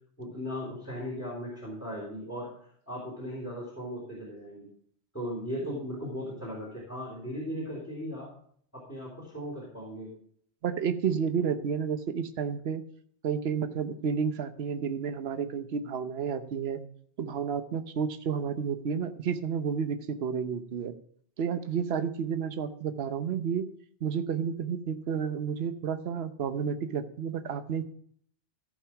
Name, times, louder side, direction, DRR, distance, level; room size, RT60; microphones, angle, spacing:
voice 1, 0.2-2.5 2.9-4.7 5.1-8.3 8.7-10.1, equal, 10° left, -5 dB, 3.7 m, -37 dB
voice 2, 10.6-12.8 13.2-16.8 17.2-20.9 21.4-23.7 24.0-27.8, right 7 dB, 65° right, 10 dB, 1.0 m, -31 dB
15.0 x 5.4 x 4.9 m, 0.62 s
omnidirectional pair, 1.2 m